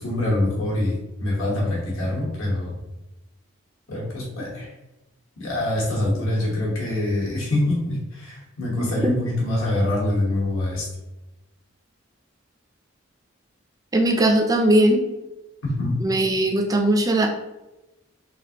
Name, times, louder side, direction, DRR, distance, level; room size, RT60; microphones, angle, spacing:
voice 1, 0.0-2.8 3.9-4.7 5.4-10.9 15.6-15.9, left 1 dB, 80° left, -4 dB, 1.2 m, -25 dB
voice 2, 8.8-9.2 13.9-15.0 16.0-17.3, right 1 dB, 15° right, 3 dB, 0.3 m, -19 dB
3.3 x 2.5 x 2.8 m, 1.0 s
head